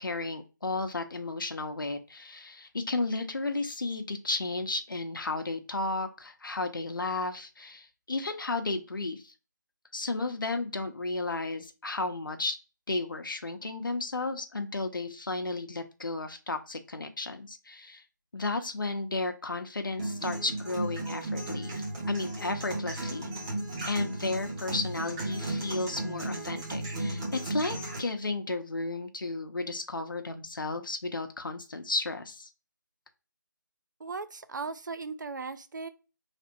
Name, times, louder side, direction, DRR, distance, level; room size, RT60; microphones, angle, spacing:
voice 1, 0.0-9.3 9.9-12.6 12.9-18.0 18.3-23.3 23.8-32.5, left 3 dB, 90° left, 0.7 m, -33 dB
sound 1, 20.0-28.0, right 2 dB, 15° right, 0.6 m, -34 dB
voice 2, 34.0-35.9, right 4 dB, 65° right, 0.5 m, -37 dB
4.2 x 3.3 x 2.6 m
figure-of-eight pair, 160°, 11 cm